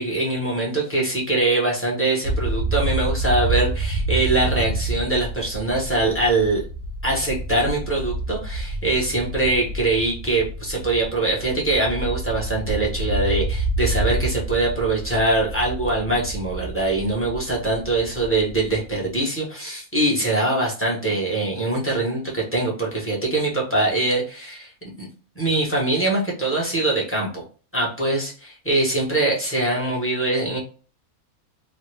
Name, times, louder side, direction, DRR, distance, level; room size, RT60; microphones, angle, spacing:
voice 1, 0.0-6.6 7.0-24.7 25.0-25.1 25.4-27.4 27.7-30.6, right 2 dB, 10° left, -4 dB, 0.8 m, -23 dB
sound 1, 2.2-19.1, right 2 dB, 75° right, 1.0 m, -28 dB
3.0 x 2.2 x 3.2 m, 0.38 s
omnidirectional pair, 1.5 m